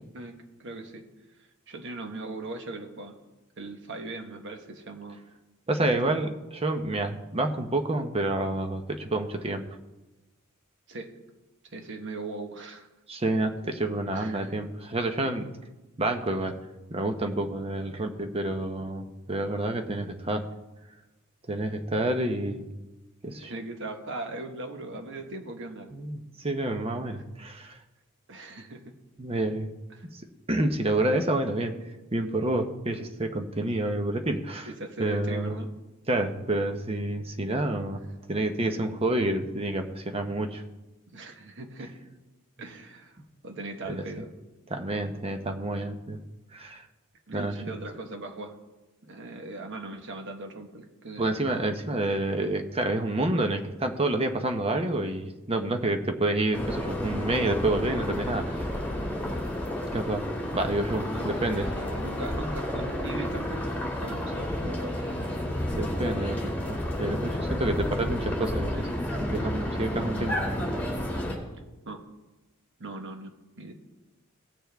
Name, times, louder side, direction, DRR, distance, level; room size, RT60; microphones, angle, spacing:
voice 1, 0.1-1.0 1.7-3.2 3.6-5.2 5.8-6.1 10.9-11.1 11.7-12.9 14.1-14.6 23.3-26.0 28.3-28.9 29.9-30.1 34.7-35.7 41.1-42.0 42.6-43.2 43.4-44.3 47.3-48.6 49.0-51.3 61.0-65.3 71.8-72.0 72.8-73.7, right 2 dB, 55° right, 5 dB, 1.2 m, -39 dB
voice 2, 5.7-9.6 13.1-15.5 16.0-16.6 16.9-20.5 21.5-22.7 23.2-23.5 25.9-27.8 29.2-29.7 30.1-30.2 30.5-31.8 32.1-34.7 35.0-35.6 36.1-38.0 38.3-40.6 43.9-44.0 44.7-46.2 46.5-46.9 47.3-47.5 51.2-58.7 59.9-60.3 60.5-61.7 65.7-70.3, right 2 dB, 25° right, 5 dB, 0.8 m, -28 dB
sound 1, 56.5-71.3, left 1 dB, 10° left, 2.5 m, -31 dB
17.5 x 6.9 x 3.4 m, 1.1 s
head